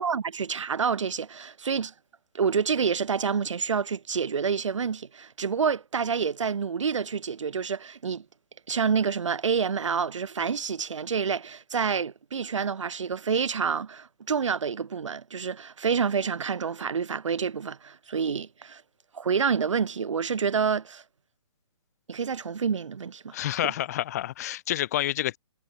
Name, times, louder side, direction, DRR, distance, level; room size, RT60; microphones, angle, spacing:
voice 1, 0.0-1.9 2.3-8.2 8.7-18.8 19.1-21.0 22.1-23.3 23.6-23.7, right 6 dB, 85° right, 0.5 m, -28 dB
voice 2, 23.3-25.4, left 13 dB, 35° left, 0.5 m, -28 dB
figure-of-eight pair, 140°, 15 cm